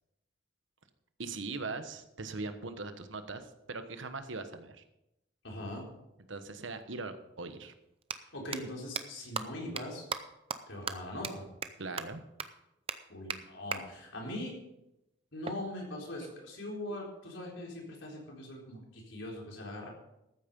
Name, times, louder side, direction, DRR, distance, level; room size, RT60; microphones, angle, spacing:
voice 1, 1.2-4.8 6.3-7.7 11.8-12.2, right 3 dB, 80° right, 9 dB, 1.2 m, -40 dB
voice 2, 5.4-5.9 8.1-10.1 10.7-11.5 13.1-14.5 15.3-19.9, left 1 dB, 80° left, -1 dB, 4.0 m, -41 dB
sound 1, 6.8-6.9 7.9-8.2 8.5-8.6 9.0-9.1 9.4-9.5 9.8-9.9 10.1-10.2 10.5-10.6 10.9-11.0 11.2-11.3 11.6-11.7 12.0-12.1 12.4-12.5 12.9-13.0 13.3-13.4 13.7-13.8 15.4-16.5, right 6 dB, 30° right, 0.6 m, -36 dB
14.0 x 9.0 x 5.4 m, 0.88 s
head